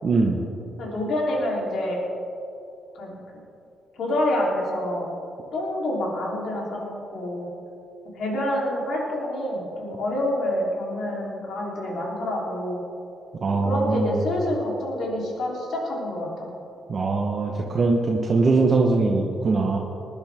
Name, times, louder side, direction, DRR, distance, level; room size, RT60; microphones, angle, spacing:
voice 1, 0.0-0.4 13.4-14.2 16.9-19.8, right 3 dB, 45° right, 0 dB, 1.1 m, -21 dB
voice 2, 0.8-2.0 2.9-3.2 3.9-5.1 5.5-7.5 8.1-12.8 13.6-16.5, left 1 dB, 70° left, -3 dB, 3.4 m, -27 dB
20.5 x 10.5 x 3.6 m, 2.7 s
cardioid pair, 110°, 0 cm